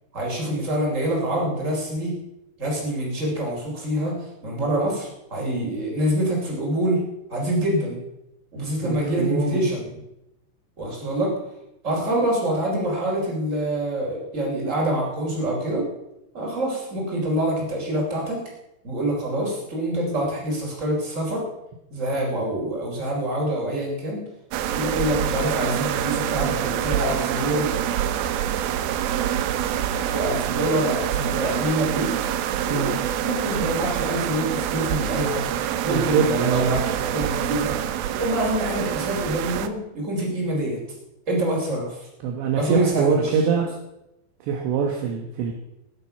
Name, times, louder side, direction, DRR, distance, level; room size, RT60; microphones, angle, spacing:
voice 1, 0.1-2.1 2.6-7.0 7.3-8.0 8.5-10.0 10.8-11.3 11.8-15.9 16.3-18.4 18.8-21.4 21.9-24.2 24.7-27.7 30.1-32.1 32.7-33.0 33.2-35.5 35.8-37.8 38.2-40.8 41.3-42.1 42.6-43.4, right 1 dB, 15° right, -2 dB, 4.1 m, -26 dB
voice 2, 8.8-9.6 32.7-32.9 35.9-36.7 42.2-43.7 44.5-45.5, right 6 dB, 75° right, 2 dB, 3.5 m, -23 dB
sound 1, 24.5-39.7, right 10 dB, 90° right, 2.1 m, -26 dB
21.0 x 7.8 x 5.8 m, 0.87 s
omnidirectional pair, 5.3 m